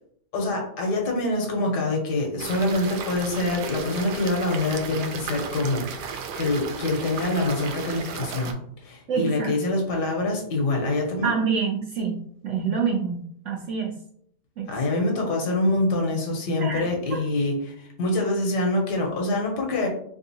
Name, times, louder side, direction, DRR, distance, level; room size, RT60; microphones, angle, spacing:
voice 1, 0.3-11.3 14.7-19.9, left 2 dB, 85° left, 1 dB, 1.6 m, -25 dB
sound 1, 2.4-8.5, right 6 dB, 90° right, 1.2 m, -35 dB
voice 2, 9.1-9.5 11.2-12.2 12.4-14.0 14.6-14.7 16.6-16.9, right 6 dB, 65° right, 0 dB, 0.8 m, -26 dB
3.6 x 3.5 x 2.8 m, 0.66 s
omnidirectional pair, 1.7 m